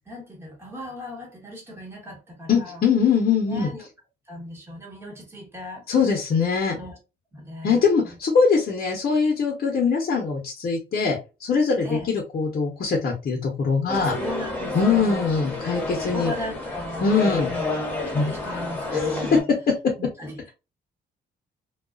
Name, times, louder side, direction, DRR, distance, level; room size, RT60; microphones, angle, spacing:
voice 1, 0.1-2.8 3.5-3.9 4.3-5.9 6.7-7.0 7.3-8.1 11.8-12.1 14.0-15.4 16.1-17.7 18.2-19.4 20.0-20.5, left 1 dB, 10° right, 1.2 m, -37 dB
voice 2, 2.5-3.7 5.9-6.8 7.6-14.1 14.7-16.3 17.0-17.5 18.1-18.3 18.9-19.1, left 5 dB, 50° left, 0.8 m, -22 dB
sound 1, 13.9-19.4, left 2 dB, 10° left, 1.1 m, -30 dB
2.3 x 2.3 x 2.3 m
cardioid pair, 90°, 20 cm